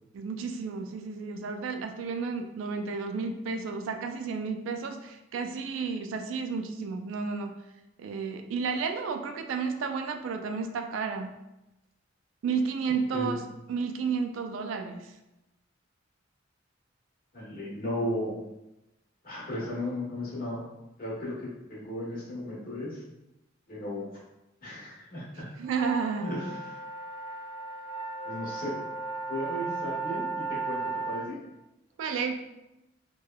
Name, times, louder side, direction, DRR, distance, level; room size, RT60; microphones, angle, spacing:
voice 1, 0.1-7.6 8.0-11.3 12.4-13.4 13.7-15.1 25.6-26.4 32.0-32.4, right 5 dB, 70° right, 5 dB, 0.3 m, -32 dB
voice 2, 17.3-18.4 19.2-20.7 21.0-23.0 23.7-24.1 24.6-25.5 26.2-26.8 28.2-28.8 29.2-31.4, left 1 dB, 45° left, -7 dB, 1.1 m, -35 dB
sound 1, 25.6-31.2, right 4 dB, 85° right, 0.8 m, -35 dB
3.2 x 2.2 x 2.2 m, 0.94 s
head